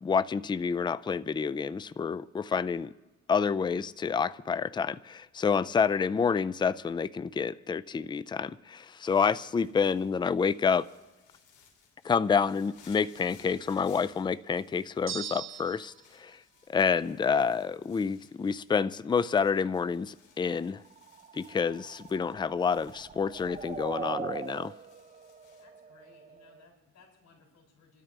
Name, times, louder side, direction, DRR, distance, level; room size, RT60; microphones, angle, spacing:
voice 1, 0.0-2.9 3.3-10.9 12.0-16.4 16.7-20.8 21.3-24.7, left 6 dB, 15° left, 0.4 m, -28 dB
sound 1, 9.1-25.6, left 6 dB, 80° left, 3.0 m, -62 dB
sound 2, 15.1-16.0, right 8 dB, 45° right, 1.1 m, -39 dB
sound 3, 20.8-26.6, right 6 dB, 25° right, 0.6 m, -42 dB
voice 2, 25.6-28.0, left 4 dB, 65° left, 6.2 m, -60 dB
27.0 x 13.0 x 3.3 m
cardioid pair, 90°, 30 cm